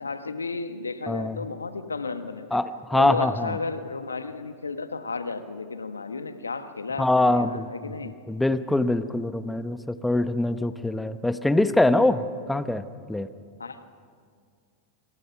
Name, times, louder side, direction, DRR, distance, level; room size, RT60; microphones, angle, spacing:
voice 1, 0.0-2.6 2.9-8.1 13.6-13.8, left 4 dB, 85° left, 9 dB, 1.4 m, -33 dB
voice 2, 1.1-1.4 2.5-3.5 7.0-7.7 8.3-13.3, left 2 dB, 5° left, 12 dB, 1.1 m, -24 dB
26.5 x 26.0 x 5.9 m, 2.2 s
figure-of-eight pair, 95°, 0 cm